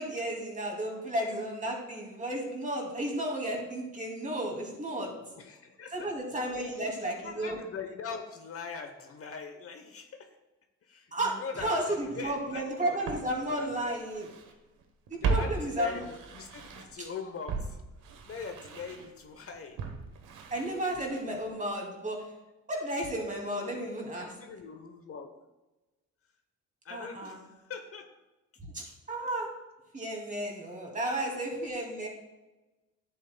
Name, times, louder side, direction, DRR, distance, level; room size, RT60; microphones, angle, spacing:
voice 1, 0.0-5.1 5.9-7.6 11.1-11.3 11.6-14.3 15.1-16.0 20.5-22.2 22.7-24.3 26.9-27.4 28.7-29.5 29.9-32.1, right 1 dB, 25° right, 0 dB, 2.6 m, -33 dB
voice 2, 4.9-6.1 6.5-10.3 10.8-13.8 15.2-17.8 18.3-19.8 23.5-23.9 24.4-25.3 26.8-28.1 28.9-29.0 31.2-31.4, left 5 dB, 50° left, 6 dB, 1.0 m, -43 dB
Walk footsteps, 12.3-12.4 13.0-14.5 14.8-17.1 17.5-21.5 21.8-21.9, right 4 dB, 85° right, 1.2 m, -36 dB
10.5 x 8.3 x 2.3 m, 1.1 s
cardioid pair, 90°, 30 cm